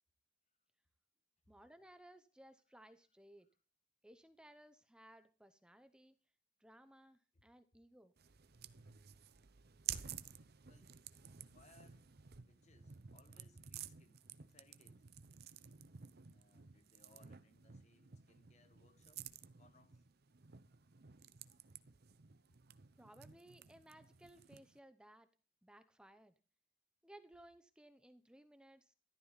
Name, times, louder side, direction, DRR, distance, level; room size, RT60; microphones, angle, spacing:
voice 1, 1.5-3.5 4.0-6.1 6.6-8.1 23.0-25.3 25.6-26.3 27.0-28.9, right 1 dB, 5° right, 0.8 m, -61 dB
sound 1, 8.2-24.8, right 9 dB, 55° right, 0.8 m, -53 dB
voice 2, 10.6-11.0 11.5-12.2 12.4-15.1 16.2-19.3 19.6-20.0, left 3 dB, 35° left, 1.4 m, -69 dB
14.0 x 13.0 x 4.1 m
head